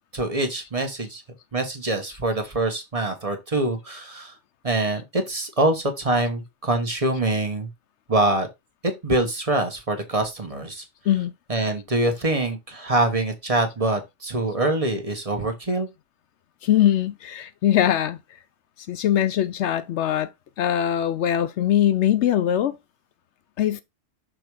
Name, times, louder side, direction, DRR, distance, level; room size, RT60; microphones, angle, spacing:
voice 1, 0.1-1.2 1.5-4.3 4.6-7.7 8.1-8.5 8.8-10.8 11.5-15.9, right 2 dB, 30° right, 1.2 m, -24 dB
voice 2, 16.6-18.2 18.9-20.3 20.6-22.8 23.6-23.8, left 11 dB, 70° left, 0.8 m, -21 dB
6.2 x 3.4 x 4.7 m
omnidirectional pair, 1.3 m